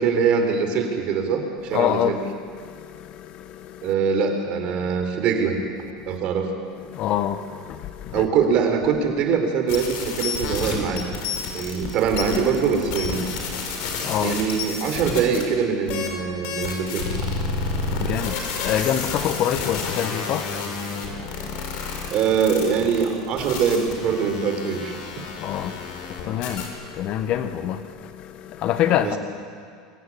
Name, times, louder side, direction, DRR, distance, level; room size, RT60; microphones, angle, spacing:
voice 1, 0.0-2.2 3.8-5.6 6.1-6.5 8.1-11.0 11.5-13.3 14.2-17.0 22.1-25.0 29.0-29.2, right 6 dB, 50° right, 4.0 m, -23 dB
voice 2, 1.7-3.9 6.0-6.2 6.9-8.2 11.2-11.7 13.5-14.4 17.5-22.2 25.2-29.2, left 10 dB, 50° left, 1.3 m, -28 dB
sound 1, 9.7-15.4 15.9-16.1 16.4-26.7, left 4 dB, 65° left, 5.1 m, -30 dB
24.0 x 15.0 x 9.9 m
supercardioid pair, 125°, 2 cm